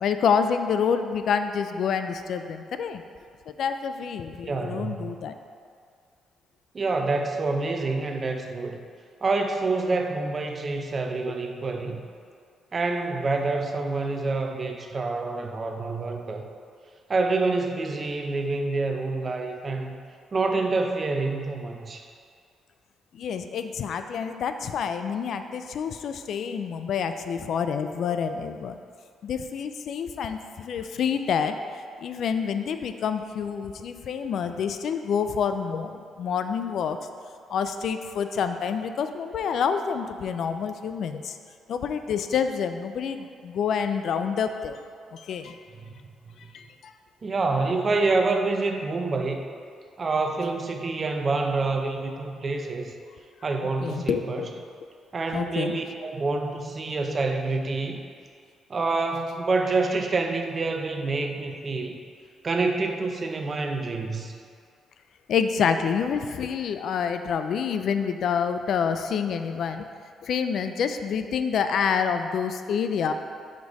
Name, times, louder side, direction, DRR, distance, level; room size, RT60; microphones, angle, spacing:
voice 1, 0.0-3.0 3.5-5.3 11.3-11.4 23.1-28.8 29.2-31.6 32.0-37.0 37.5-41.4 41.7-44.8 45.1-45.6 46.5-46.9 53.8-54.5 55.3-55.8 65.3-69.9 70.2-73.1, left 6 dB, 65° left, 8 dB, 0.3 m, -27 dB
voice 2, 4.5-5.2 6.7-8.8 9.2-12.0 12.7-16.4 17.1-20.0 20.3-22.1 45.8-45.9 47.2-49.4 50.0-52.9 53.4-54.5 55.1-58.0 58.7-62.0 62.4-64.4, right 3 dB, 35° right, 4 dB, 0.6 m, -27 dB
5.1 x 4.0 x 4.7 m, 2.2 s
cardioid pair, 90°, 0 cm